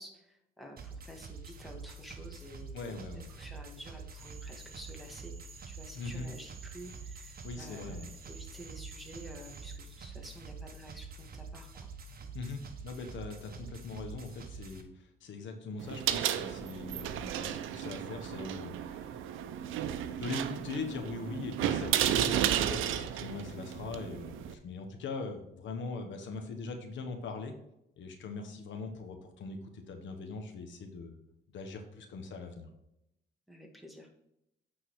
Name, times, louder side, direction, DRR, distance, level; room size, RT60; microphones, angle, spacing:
voice 1, 0.0-3.0 3.3-5.3 5.7-11.9 33.5-34.1, equal, ahead, 1 dB, 1.8 m, -50 dB
sound 1, 0.8-14.8, right 4 dB, 50° right, 1.2 m, -46 dB
voice 2, 2.7-3.3 6.0-6.3 7.4-8.1 12.3-19.2 20.2-27.5 28.0-31.2 31.5-32.7, left 4 dB, 70° left, 5 dB, 1.2 m, -41 dB
Cricket / Frog, 4.2-9.8, right 5 dB, 30° right, 0.8 m, -54 dB
sound 2, 15.8-24.5, right 10 dB, 85° right, 0.6 m, -33 dB
8.8 x 3.9 x 4.7 m, 0.82 s
cardioid pair, 90°, 20 cm